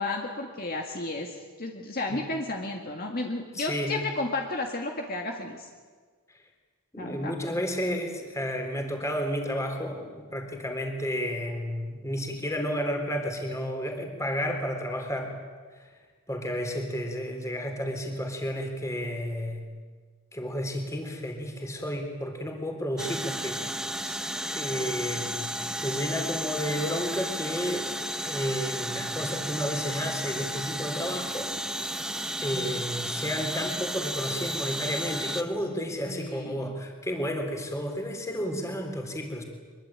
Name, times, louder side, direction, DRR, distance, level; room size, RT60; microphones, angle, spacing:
voice 1, 0.0-5.7 7.0-7.3 24.0-24.2 24.8-25.0 32.5-32.8 36.1-36.7, left 2 dB, 40° left, 2 dB, 2.0 m, -33 dB
voice 2, 3.5-4.0 6.9-15.3 15.8-15.9 16.3-19.7 20.3-23.6 24.5-27.9 28.2-31.6 32.4-39.4, equal, 15° left, 4 dB, 3.6 m, -32 dB
sound 1, 23.0-35.4, equal, 5° right, 1.0 m, -33 dB
24.0 x 23.0 x 8.9 m, 1.5 s
head